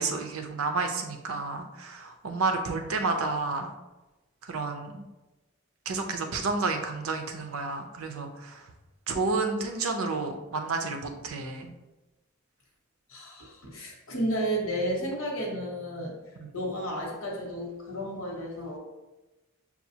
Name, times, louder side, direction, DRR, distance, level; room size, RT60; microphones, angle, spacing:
voice 1, 0.0-3.7 4.4-5.0 5.9-8.7 9.1-11.7 16.4-16.5, right 3 dB, 85° right, 5 dB, 0.6 m, -30 dB
voice 2, 13.1-16.1 16.5-18.8, equal, 75° left, -1 dB, 1.1 m, -32 dB
5.6 x 2.4 x 2.8 m, 1.0 s
head